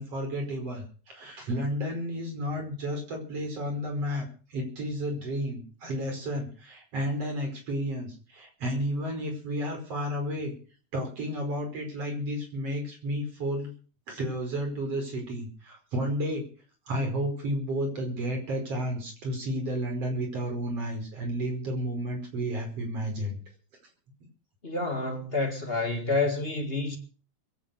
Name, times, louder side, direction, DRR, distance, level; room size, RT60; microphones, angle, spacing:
voice 1, 0.0-10.5 10.9-13.7 14.1-16.4 16.9-23.4, equal, 55° right, 6.2 m, -32 dB
voice 2, 24.6-27.0, left 3 dB, 25° left, 1.8 m, -28 dB
22.0 x 9.0 x 6.6 m
omnidirectional pair, 3.3 m